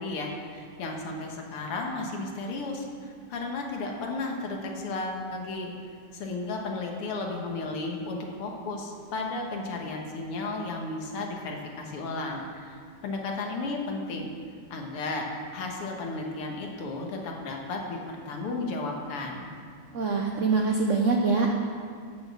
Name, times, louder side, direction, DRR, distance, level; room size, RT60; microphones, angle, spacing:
voice 1, 0.0-5.7 6.1-14.3 14.7-15.2 15.5-18.0 18.3-19.5, left 3 dB, 85° left, 1 dB, 2.2 m, -34 dB
voice 2, 19.9-21.5, right 4 dB, 85° right, 2 dB, 0.6 m, -24 dB
10.5 x 6.4 x 7.3 m, 2.1 s
omnidirectional pair, 2.4 m